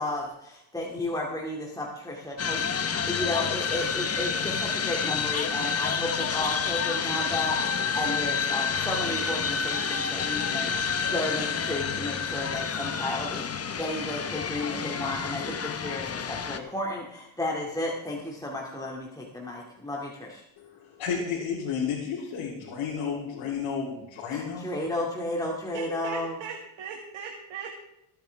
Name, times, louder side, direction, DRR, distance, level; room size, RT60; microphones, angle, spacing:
voice 1, 0.0-20.4 24.3-26.4, left 1 dB, 5° left, -3 dB, 2.3 m, -33 dB
sound 1, 2.4-16.6, left 6 dB, 30° left, 1.1 m, -29 dB
voice 2, 20.6-24.7, left 6 dB, 75° left, -5 dB, 3.2 m, -32 dB
voice 3, 25.7-27.7, right 6 dB, 70° right, 1 dB, 2.0 m, -38 dB
21.5 x 9.2 x 3.5 m, 0.87 s
cardioid pair, 95°, 48 cm